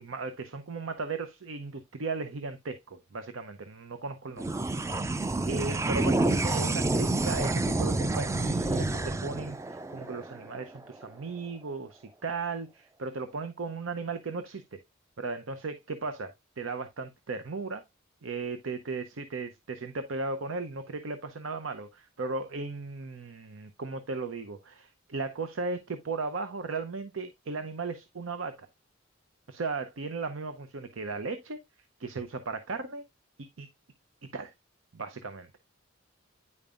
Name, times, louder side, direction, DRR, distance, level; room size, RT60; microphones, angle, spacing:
voice 1, 0.0-4.5 5.5-14.6 15.2-17.8 18.2-28.7 29.5-31.6 32.0-33.0 33.6-33.7 34.3-34.5 34.9-35.5, right 3 dB, 90° right, 0.7 m, -36 dB
sound 1, 4.4-11.1, right 2 dB, 15° right, 0.3 m, -29 dB
9.5 x 5.3 x 2.4 m
head